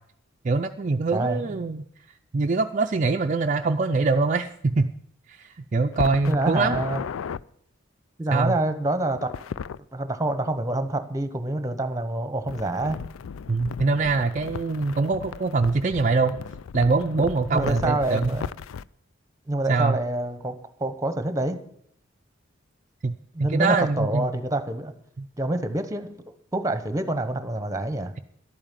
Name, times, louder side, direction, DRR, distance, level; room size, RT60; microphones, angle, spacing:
voice 1, 0.4-1.8 2.3-4.9 5.3-6.8 8.3-8.5 13.5-16.4 16.7-18.4 19.7-20.0 23.0-23.1 23.5-24.3 25.2-25.3, right 3 dB, 40° right, 5 dB, 0.5 m, -23 dB
voice 2, 1.1-1.6 6.3-7.0 8.2-9.5 9.9-13.0 17.5-18.5 19.5-21.6 23.3-24.9 25.4-26.1 26.5-28.1, right 1 dB, 15° right, 10 dB, 1.0 m, -27 dB
sound 1, 5.9-7.4 9.1-9.8 12.5-18.9, left 6 dB, 85° left, 0.4 m, -35 dB
11.5 x 8.9 x 7.4 m, 0.67 s
head